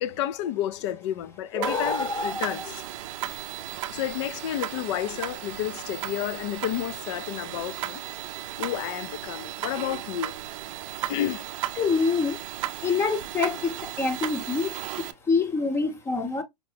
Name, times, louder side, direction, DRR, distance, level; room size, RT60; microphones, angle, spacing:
voice 1, 0.0-2.8 3.9-8.0 8.6-10.4 11.1-11.4, left 12 dB, 45° left, 0.4 m, -31 dB
voice 2, 1.5-2.7 11.8-12.4 12.8-16.4, left 4 dB, 10° left, 0.7 m, -26 dB
sound 1, 1.6-15.1, right 14 dB, 50° right, 0.5 m, -35 dB
5.0 x 2.1 x 3.2 m
hypercardioid pair, 145°, 21 cm